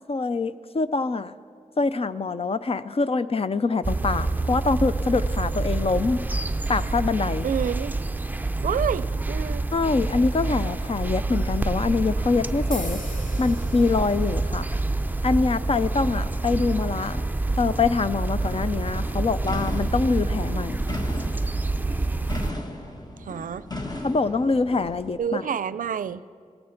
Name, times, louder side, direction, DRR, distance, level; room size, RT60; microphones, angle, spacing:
voice 1, 0.1-1.3 1.8-6.2 6.7-7.5 9.7-13.0 13.4-14.7 15.2-17.2 17.6-20.8 24.0-25.5, left 4 dB, 45° left, 13 dB, 0.5 m, -24 dB
sound 1, 3.8-22.5, right 2 dB, 15° right, 0.5 m, -27 dB
voice 2, 7.4-7.9 8.6-9.6 23.3-23.6 25.2-26.2, right 8 dB, 90° right, 17 dB, 0.4 m, -28 dB
sound 2, 12.7-20.8, left 1 dB, 85° left, 2.3 m, -46 dB
sound 3, 18.4-25.1, left 1 dB, 30° left, 1.5 m, -37 dB
17.5 x 14.5 x 5.8 m, 2.2 s
wide cardioid pair, 80°, 13 cm